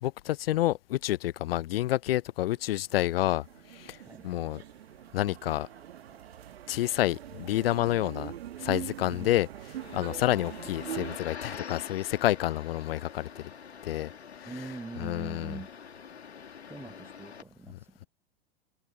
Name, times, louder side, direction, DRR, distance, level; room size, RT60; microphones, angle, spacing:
voice 1, 0.0-3.4 3.7-4.0 4.2-4.6 5.1-5.7 6.7-8.3 8.6-13.4 13.8-14.1 14.4-14.6 15.0-15.6 17.7-18.1, left 14 dB, 65° left, 0.7 m, -29 dB
sound 1, 2.5-11.2, right 12 dB, 70° right, 1.5 m, -43 dB
sound 2, 9.8-17.4, left 7 dB, 80° left, 2.3 m, -45 dB
voice 2, 14.4-15.7 16.6-18.1, right 3 dB, 5° right, 0.7 m, -43 dB
figure-of-eight pair, 95°, 32 cm